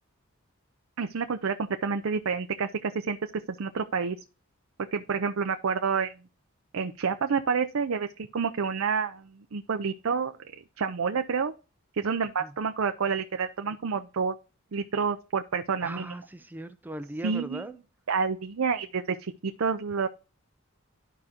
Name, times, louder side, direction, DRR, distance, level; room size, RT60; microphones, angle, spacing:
voice 1, 1.0-3.2 3.5-4.2 4.9-6.1 6.7-8.1 8.3-10.4 10.8-11.5 11.9-14.3 14.7-16.1 17.2-17.6 18.1-20.1, right 5 dB, 80° right, 0.6 m, -29 dB
voice 2, 15.8-17.8, right 1 dB, 10° right, 0.4 m, -38 dB
12.0 x 5.0 x 2.8 m
head